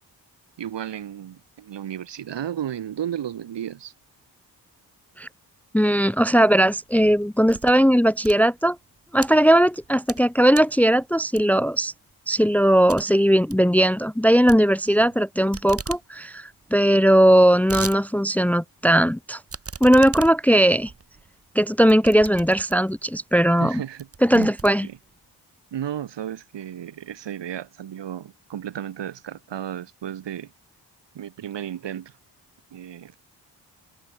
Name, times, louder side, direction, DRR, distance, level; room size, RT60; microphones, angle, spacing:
voice 1, 0.6-3.9 15.0-15.1 23.6-24.1 24.3-24.5 24.8-25.0 25.7-30.5 31.2-32.1 32.7-33.1, right 10 dB, 80° right, 5.2 m, -33 dB
voice 2, 5.7-8.8 9.1-11.9 12.3-19.4 19.8-20.9 21.5-23.8 24.2-24.9, equal, 5° left, 0.7 m, -18 dB
sound 1, 6.9-7.8 8.1-9.3 9.8-10.3 10.5-10.8 11.4-11.7 12.1-12.2 12.5-12.6 12.9-13.0 13.3-13.6 14.5-15.2 15.5-16.0 16.4-16.5 16.6-16.7 17.3-18.0 18.4-18.5 19.5-23.0 23.6-23.7 24.0-25.2, right 5 dB, 35° right, 1.6 m, -37 dB
cardioid pair, 55°, 42 cm